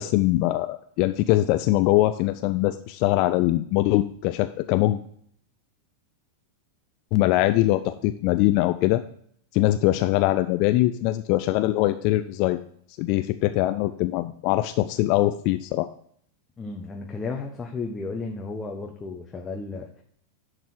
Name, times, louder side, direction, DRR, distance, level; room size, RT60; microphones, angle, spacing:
voice 1, 0.0-5.0 7.1-9.0 9.5-12.6 13.0-15.9, left 16 dB, 45° left, 10 dB, 0.4 m, -22 dB
voice 2, 16.6-20.0, left 4 dB, 15° left, 1 dB, 0.9 m, -33 dB
11.0 x 4.0 x 4.7 m, 0.62 s
figure-of-eight pair, 90°, 0 cm